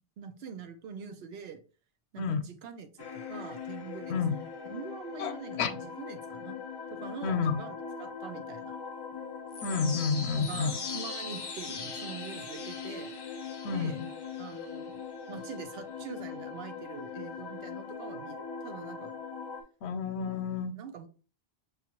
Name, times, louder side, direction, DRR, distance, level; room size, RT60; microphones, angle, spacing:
voice 1, 0.2-1.6 2.1-4.2 4.7-6.6 6.9-8.8 10.3-13.1 13.7-14.0 14.4-15.0 15.3-19.2 20.2-20.4 20.7-21.1, right 6 dB, 80° right, 0.8 m, -44 dB
sound 1, 3.0-19.6, left 5 dB, 35° left, 0.4 m, -40 dB
voice 2, 7.2-7.6 9.6-10.7 13.6-14.1 19.8-20.7, left 5 dB, 90° left, 0.8 m, -30 dB
5.4 x 2.4 x 2.8 m
omnidirectional pair, 1.0 m